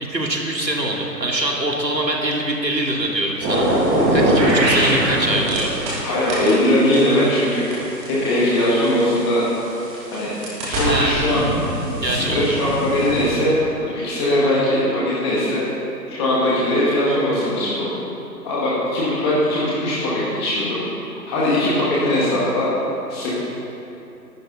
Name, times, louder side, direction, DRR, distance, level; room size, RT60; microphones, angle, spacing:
voice 1, 0.1-3.7 4.1-5.8 6.4-6.5 10.8-11.1 12.0-12.7, right 1 dB, 80° right, -1 dB, 2.9 m, -23 dB
sound 1, 3.4-6.0 6.3-9.2 9.8-13.3, right 1 dB, 10° right, 2.4 m, -21 dB
voice 2, 6.0-7.7 8.1-9.4 10.1-10.3 10.6-11.4 11.9-13.6 13.8-15.6 16.1-17.9 18.4-20.8 21.3-22.7 23.1-23.3, left 1 dB, 15° left, -7 dB, 1.9 m, -20 dB
18.5 x 12.0 x 4.1 m, 2.9 s
figure-of-eight pair, 145°, 50 cm